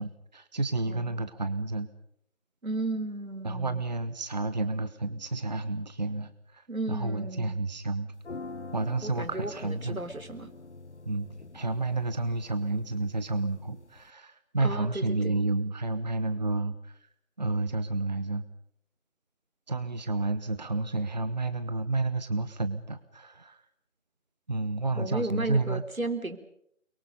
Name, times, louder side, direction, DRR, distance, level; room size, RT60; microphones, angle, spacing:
voice 1, 0.0-1.9 3.4-8.1 8.7-10.0 11.0-17.0 17.4-18.4 19.7-23.6 24.5-25.8, right 2 dB, 30° right, 12 dB, 1.0 m, -30 dB
voice 2, 0.9-1.3 2.6-3.8 6.7-7.6 9.0-10.5 14.6-15.4 25.0-26.4, right 2 dB, 85° right, 10 dB, 3.5 m, -34 dB
sound 1, 8.2-14.1, left 3 dB, 55° left, 1.3 m, -46 dB
29.5 x 23.0 x 5.3 m, 0.70 s
figure-of-eight pair, 160°, 41 cm